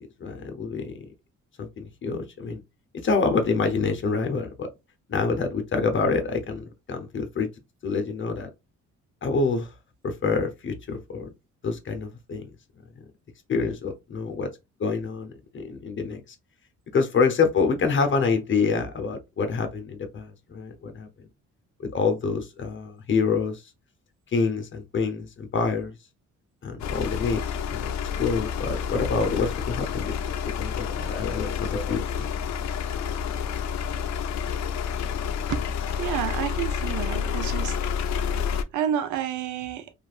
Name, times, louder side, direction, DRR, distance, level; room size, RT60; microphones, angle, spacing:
voice 1, 0.2-1.1 1.6-2.6 2.9-4.7 5.1-7.5 7.8-8.5 9.2-9.7 10.0-11.3 11.6-12.5 13.5-14.5 14.8-16.2 16.9-21.1 21.8-23.6 24.3-25.9 26.6-27.4 27.7-30.1 30.4-32.3, left 4 dB, 40° left, 0.9 m, -27 dB
sound 1, 26.8-38.6, left 7 dB, 65° left, 0.5 m, -29 dB
voice 2, 36.0-37.8 38.7-39.9, right 9 dB, 80° right, 0.7 m, -29 dB
3.0 x 2.5 x 2.4 m
cardioid pair, 90°, 30 cm